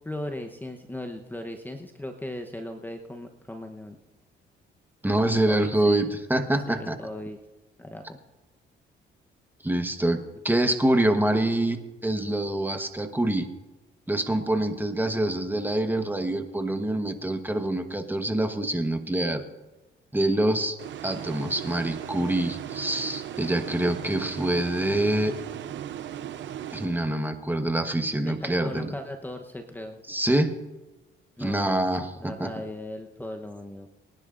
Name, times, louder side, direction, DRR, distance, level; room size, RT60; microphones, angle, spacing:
voice 1, 0.0-4.0 5.1-6.1 6.7-7.4 7.8-8.2 28.2-30.0 31.4-31.8 32.2-33.9, left 1 dB, 10° left, 4 dB, 0.9 m, -37 dB
voice 2, 5.0-7.0 9.6-10.2 10.4-13.5 14.1-19.4 20.1-25.3 26.7-28.9 30.1-30.5 31.4-32.5, right 1 dB, 10° right, 6 dB, 1.2 m, -25 dB
sound 1, 20.8-27.5, right 10 dB, 70° right, 0.7 m, -37 dB
24.5 x 10.5 x 2.5 m, 1.1 s
cardioid pair, 90°, 20 cm